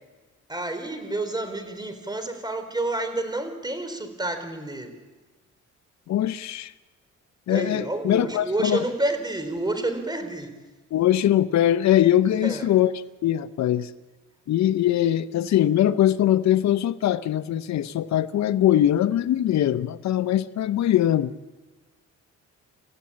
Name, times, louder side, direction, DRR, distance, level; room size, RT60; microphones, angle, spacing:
voice 1, 0.5-4.9 7.5-10.5 12.4-12.7, right 2 dB, 15° right, 8 dB, 4.2 m, -29 dB
voice 2, 6.1-6.7 7.5-8.8 10.9-12.9 13.2-13.9 14.5-21.3, left 12 dB, 65° left, 11 dB, 0.8 m, -21 dB
29.0 x 15.0 x 8.7 m, 1.2 s
cardioid pair, 90°, 30 cm